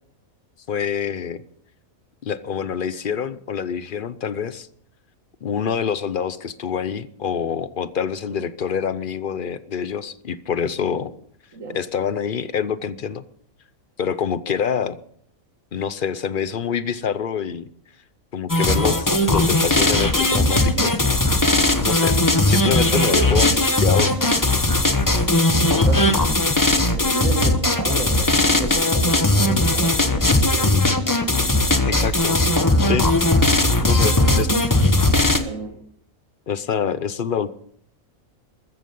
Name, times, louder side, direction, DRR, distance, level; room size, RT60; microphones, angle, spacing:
voice 1, 0.7-1.4 2.2-4.7 5.4-11.1 11.7-13.2 14.0-15.0 15.7-17.6 18.3-21.0 21.8-22.2 22.4-23.5 23.8-24.2 31.8-32.4 32.8-33.1 33.7-34.5 36.5-37.5, left 7 dB, 50° left, 15 dB, 0.7 m, -26 dB
sound 1, 18.5-35.4, left 2 dB, 15° left, 0.9 m, -18 dB
voice 2, 22.7-23.6 25.6-30.9 34.1-34.4 34.8-34.9 35.2-35.8, right 2 dB, 70° right, 3 dB, 2.2 m, -32 dB
14.0 x 14.0 x 5.4 m, 0.66 s
omnidirectional pair, 1.4 m